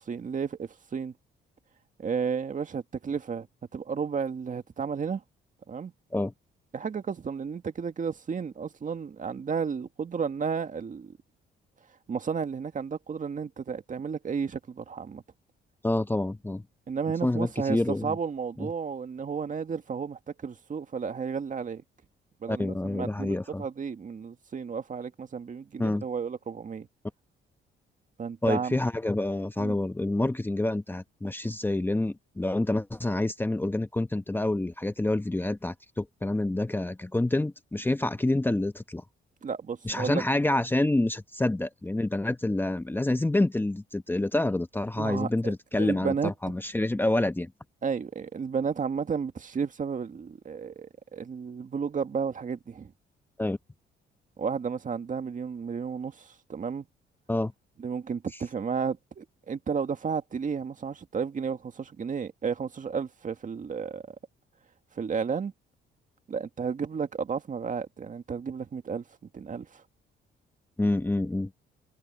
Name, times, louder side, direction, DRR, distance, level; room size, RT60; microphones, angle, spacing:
voice 1, 0.1-1.1 2.0-3.5 3.7-5.2 5.7-5.9 6.7-11.2 12.1-15.2 16.9-21.8 22.4-26.9 28.2-28.8 29.6-29.8 39.4-40.2 45.0-46.3 47.8-52.9 54.4-56.9 57.8-64.2 65.0-65.5 66.3-69.0 69.3-69.8, right 6 dB, 40° right, 1.9 m, -32 dB
voice 2, 15.8-16.6 17.2-18.2 18.6-18.7 22.5-23.6 25.8-26.0 28.4-39.0 39.8-47.5 53.4-53.6 57.3-57.5 70.8-71.5, left 2 dB, 10° left, 1.0 m, -27 dB
cardioid pair, 90°, 20 cm